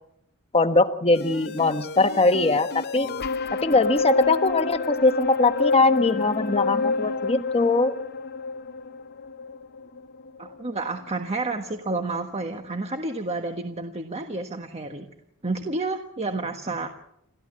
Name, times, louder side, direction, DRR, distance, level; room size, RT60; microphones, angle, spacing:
voice 1, 0.5-3.1 3.6-8.0, left 3 dB, 25° left, 8 dB, 1.2 m, -21 dB
sound 1, 1.1-11.5 11.9-12.0, left 4 dB, 50° left, 0.8 m, -29 dB
voice 2, 10.4-15.1 15.4-16.9, right 3 dB, 30° right, 5 dB, 1.4 m, -30 dB
29.5 x 13.5 x 7.5 m, 0.77 s
head